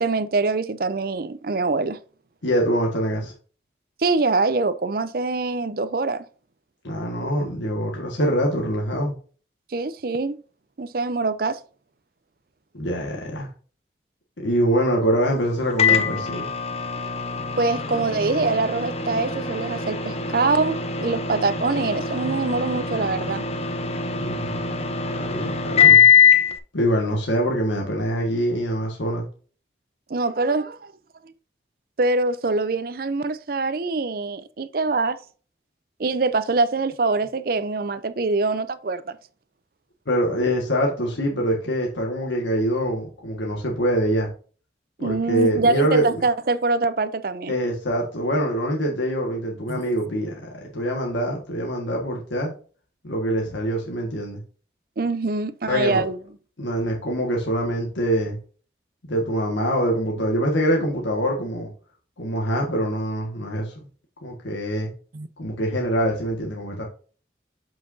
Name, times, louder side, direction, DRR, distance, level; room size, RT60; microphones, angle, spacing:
voice 1, 0.0-2.0 4.0-6.3 9.7-10.4 10.8-11.6 17.6-23.4 30.1-30.9 31.2-31.3 32.0-35.2 36.0-39.2 45.0-47.5 49.7-49.8 55.0-56.2 65.1-65.3, right 3 dB, 50° right, 0.5 m, -24 dB
voice 2, 2.4-3.3 6.8-9.1 12.7-13.5 14.4-16.5 24.0-24.5 25.1-26.1 26.7-29.3 40.1-44.3 45.0-46.2 47.5-52.5 53.0-54.4 55.7-56.0 56.6-58.4 59.0-61.7 62.2-63.7 64.2-64.9 65.4-66.9, equal, 90° left, 1.6 m, -24 dB
Microwave oven, 15.8-26.6, left 7 dB, 35° left, 0.7 m, -22 dB
7.7 x 5.7 x 2.7 m
head